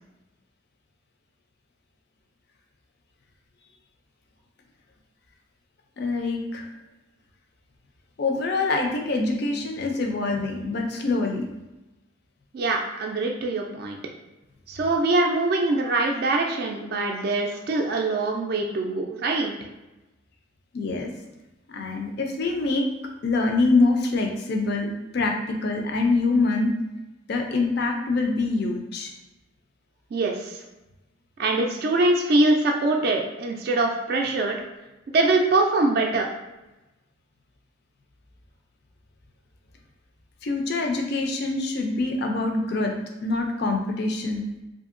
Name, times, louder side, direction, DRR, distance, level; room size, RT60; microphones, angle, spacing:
voice 1, 6.0-6.7 8.2-11.5 20.7-21.1 21.7-22.8 23.2-26.8 27.3-29.1 40.4-44.5, left 3 dB, 55° left, 3 dB, 0.4 m, -25 dB
voice 2, 12.5-14.0 14.7-19.5 30.1-30.6 31.4-34.6 35.1-36.3, right 2 dB, 50° right, 1 dB, 0.3 m, -23 dB
2.7 x 2.6 x 2.5 m, 1.0 s
head